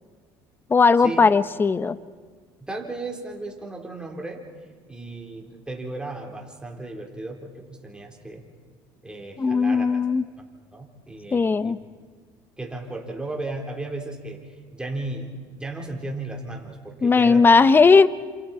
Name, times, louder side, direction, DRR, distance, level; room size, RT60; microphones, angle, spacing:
voice 1, 0.7-2.0 9.4-10.2 11.3-11.8 17.0-18.1, left 4 dB, 20° left, 15 dB, 0.8 m, -17 dB
voice 2, 2.6-4.4 4.9-8.4 9.0-10.0 10.4-10.5 10.7-11.7 12.6-14.4 14.7-17.5, right 2 dB, 10° right, 1 dB, 4.0 m, -35 dB
29.0 x 27.5 x 4.4 m, 1.5 s
supercardioid pair, 100°, 10 cm